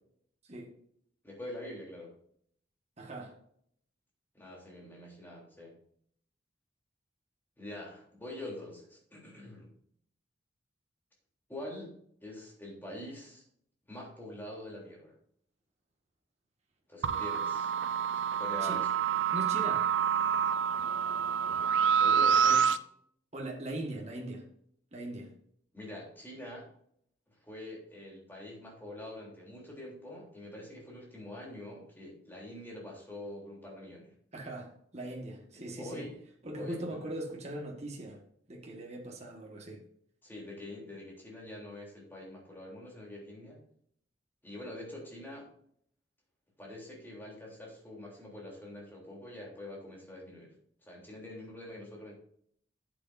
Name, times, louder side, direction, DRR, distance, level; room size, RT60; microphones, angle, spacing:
voice 1, 1.2-2.1 4.3-5.8 7.6-9.7 11.5-11.9 12.2-13.4 13.9-15.1 16.9-17.7 18.3-18.9 21.9-22.4 25.7-26.7 27.3-34.1 35.5-36.2 36.5-37.0 40.2-43.6 44.4-45.5 46.6-50.5 50.8-52.1, left 1 dB, 10° left, -3 dB, 3.3 m, -45 dB
voice 2, 3.0-3.4 18.6-18.8 19.3-19.9 22.4-22.6 23.3-24.4 24.9-25.3 34.3-36.0 36.4-38.2 38.5-39.8, right 1 dB, 35° right, 0 dB, 1.6 m, -40 dB
sound 1, 17.0-22.8, right 7 dB, 75° right, 0.5 m, -27 dB
11.0 x 8.1 x 2.7 m, 0.66 s
head